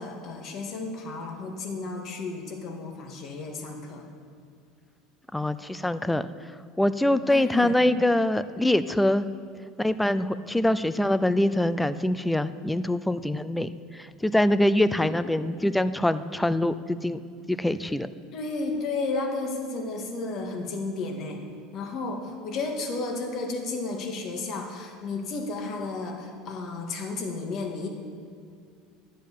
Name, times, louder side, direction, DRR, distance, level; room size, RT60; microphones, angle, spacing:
voice 1, 0.0-4.1 7.3-7.8 15.0-15.2 18.3-21.4 21.7-27.9, left 3 dB, 50° left, 3 dB, 1.9 m, -33 dB
voice 2, 5.3-6.3 6.8-9.3 9.8-17.2 17.5-18.1, left 1 dB, 5° left, 14 dB, 0.5 m, -24 dB
11.0 x 7.5 x 7.3 m, 2.3 s
supercardioid pair, 95°, 0 cm